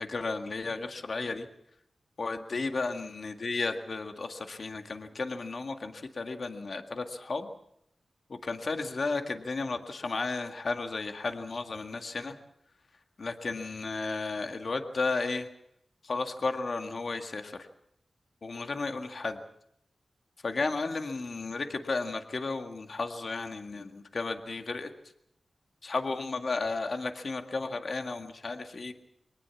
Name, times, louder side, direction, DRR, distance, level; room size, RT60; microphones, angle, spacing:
voice 1, 0.0-1.5 2.2-7.5 8.3-12.4 13.2-15.5 16.0-17.6 18.4-19.4 20.4-24.9 25.8-28.9, left 3 dB, 55° left, 6 dB, 1.9 m, -33 dB
23.5 x 19.0 x 7.2 m, 0.74 s
wide cardioid pair, 90°, 0 cm